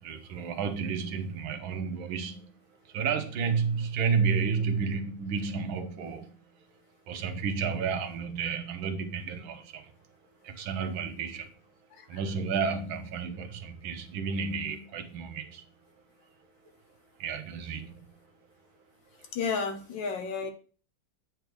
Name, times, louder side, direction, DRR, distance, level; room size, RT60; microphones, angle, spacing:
voice 1, 0.0-2.5 2.9-6.4 7.1-9.9 10.4-11.5 12.1-15.6 17.2-18.2, right 5 dB, 75° right, 1.7 m, -31 dB
voice 2, 11.9-12.2 19.3-20.5, left 5 dB, 65° left, 1.6 m, -32 dB
8.6 x 3.5 x 6.2 m
omnidirectional pair, 2.3 m